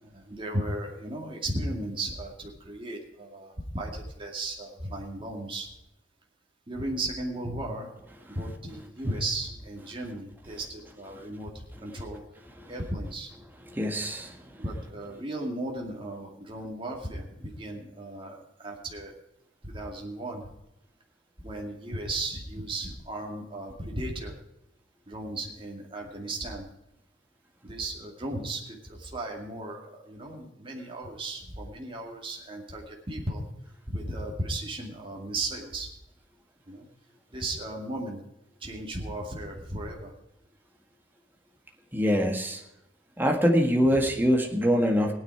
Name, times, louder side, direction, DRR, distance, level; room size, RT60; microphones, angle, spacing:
voice 1, 0.0-5.7 6.7-7.9 8.3-12.2 12.7-13.3 14.6-19.1 19.6-20.5 21.4-24.3 25.1-26.7 27.6-33.4 33.9-35.9 36.7-36.9 37.3-38.2 38.6-40.1 43.9-44.1, right 1 dB, 25° right, 0 dB, 2.3 m, -35 dB
voice 2, 13.7-14.3 41.9-42.6 43.2-45.1, equal, 10° right, 2 dB, 1.7 m, -23 dB
17.5 x 9.6 x 4.8 m, 0.87 s
head